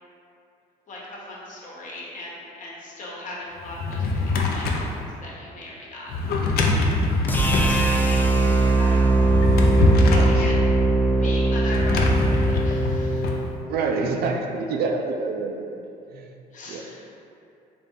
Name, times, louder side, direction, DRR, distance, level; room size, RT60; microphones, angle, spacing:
voice 1, 0.9-6.1 7.5-9.4 10.1-10.6 11.2-13.3 16.5-17.1, left 1 dB, 50° left, -4 dB, 1.0 m, -38 dB
Drawer open or close, 3.6-4.9 6.1-7.8 9.1-10.4 11.7-13.4, left 2 dB, 65° left, 0.5 m, -23 dB
sound 1, 7.3-13.4, right 2 dB, 10° left, 0.4 m, -20 dB
voice 2, 13.6-15.8 16.1-16.3 16.7-16.8, right 4 dB, 65° right, 3 dB, 0.4 m, -27 dB
3.8 x 2.8 x 3.6 m, 2.6 s
cardioid pair, 110°, 17 cm